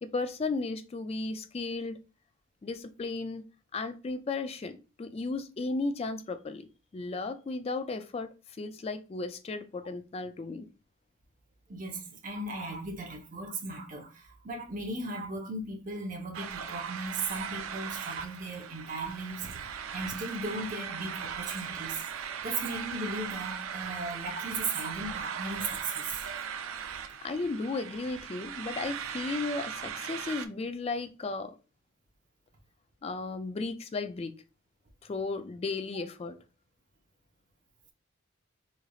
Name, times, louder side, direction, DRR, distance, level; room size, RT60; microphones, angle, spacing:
voice 1, 0.0-2.0 2.6-3.4 3.7-6.7 6.9-10.7 27.2-31.6 33.0-34.3 35.0-36.4, left 3 dB, 30° left, 0.3 m, -35 dB
voice 2, 11.7-26.2, right 2 dB, 40° right, 0.7 m, -37 dB
sound 1, 16.3-30.5, right 7 dB, 80° right, 0.4 m, -39 dB
3.8 x 3.2 x 2.3 m
head